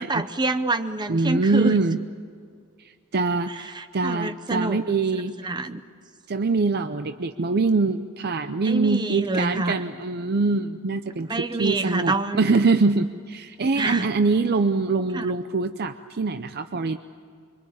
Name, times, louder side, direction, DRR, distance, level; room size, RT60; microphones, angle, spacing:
voice 1, 0.0-1.8 3.7-4.8 5.1-5.8 8.6-9.8 11.3-12.4 13.8-14.1 15.1-15.2, right 2 dB, 20° right, 10 dB, 0.8 m, -27 dB
voice 2, 1.1-2.0 2.8-5.5 6.3-17.0, right 3 dB, 50° right, 9 dB, 0.6 m, -24 dB
25.5 x 24.0 x 8.5 m, 2.2 s
head